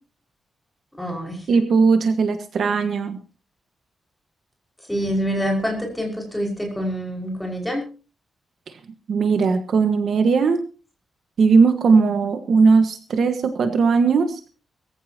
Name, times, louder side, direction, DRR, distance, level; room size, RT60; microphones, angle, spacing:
voice 1, 1.0-1.5 4.9-7.8, equal, 5° left, 0 dB, 5.5 m, -26 dB
voice 2, 1.5-3.2 8.7-8.8 9.1-10.6 11.4-14.4, right 5 dB, 55° right, 8 dB, 1.5 m, -18 dB
22.0 x 15.0 x 2.9 m, 0.35 s
wide cardioid pair, 175°, 0 cm